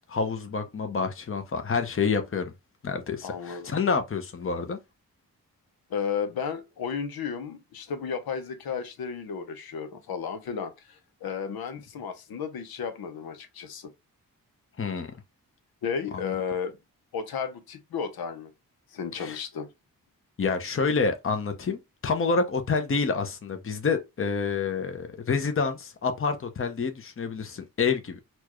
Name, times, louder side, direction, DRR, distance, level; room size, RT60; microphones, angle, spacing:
voice 1, 0.1-2.5 2.8-4.8 14.8-15.1 16.2-16.3 19.1-19.4 20.4-28.2, left 5 dB, 35° left, 0.8 m, -28 dB
voice 2, 3.2-3.7 5.9-13.9 15.8-16.8 17.1-18.5 18.9-19.7, left 6 dB, 85° left, 0.8 m, -33 dB
4.4 x 2.4 x 3.0 m
cardioid pair, 60°, 36 cm